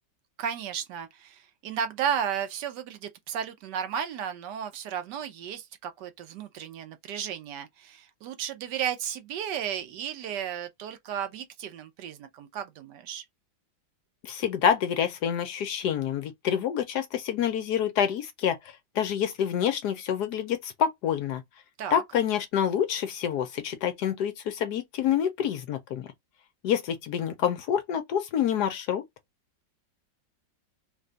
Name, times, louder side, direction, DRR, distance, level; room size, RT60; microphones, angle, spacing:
voice 1, 0.4-13.2 21.8-22.0, right 8 dB, 70° right, 1.2 m, -34 dB
voice 2, 14.2-21.4 21.9-26.1 26.6-29.0, left 9 dB, 70° left, 1.1 m, -27 dB
3.3 x 2.2 x 3.8 m
omnidirectional pair, 2.0 m